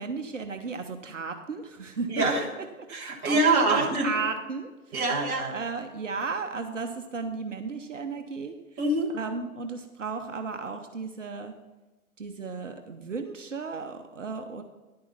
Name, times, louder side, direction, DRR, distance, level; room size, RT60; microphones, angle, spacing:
voice 1, 0.0-2.4 2.8-2.9 3.2-5.0 5.5-8.6 9.1-11.5 12.2-14.6, right 4 dB, 60° right, 6 dB, 1.0 m, -34 dB
voice 2, 2.1-2.5 2.9-4.1 4.9-5.5 8.8-9.1, right 2 dB, 15° right, -2 dB, 1.4 m, -24 dB
10.5 x 9.5 x 4.0 m, 1.1 s
figure-of-eight pair, 130°, 43 cm